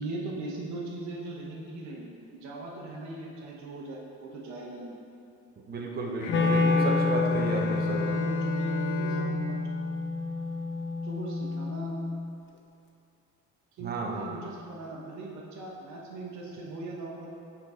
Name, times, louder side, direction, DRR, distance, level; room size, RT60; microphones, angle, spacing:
voice 1, 0.0-5.0 7.5-9.6 11.0-12.0 13.8-17.3, right 2 dB, 70° right, -2 dB, 1.1 m, -39 dB
voice 2, 5.7-8.1 13.8-14.3, right 2 dB, 35° right, 0 dB, 0.8 m, -33 dB
Bowed string instrument, 6.2-11.1, equal, 85° left, 0.8 m, -36 dB
Wind instrument woodwind instrument, 6.3-12.4, left 3 dB, 40° left, 0.6 m, -28 dB
5.8 x 4.0 x 4.3 m, 2.6 s
cardioid pair, 110°, 30 cm